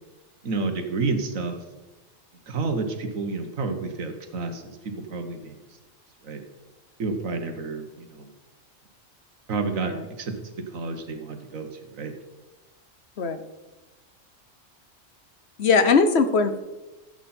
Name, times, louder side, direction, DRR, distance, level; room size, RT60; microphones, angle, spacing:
voice 1, 0.4-1.6 2.5-4.7 5.1-5.6 6.2-6.4 7.0-8.3 9.5-11.7 11.9-12.1, right 3 dB, 90° right, 6 dB, 1.7 m, -30 dB
voice 2, 15.6-16.6, left 4 dB, 55° left, 9 dB, 1.1 m, -20 dB
15.0 x 8.0 x 4.4 m, 1.1 s
omnidirectional pair, 1.4 m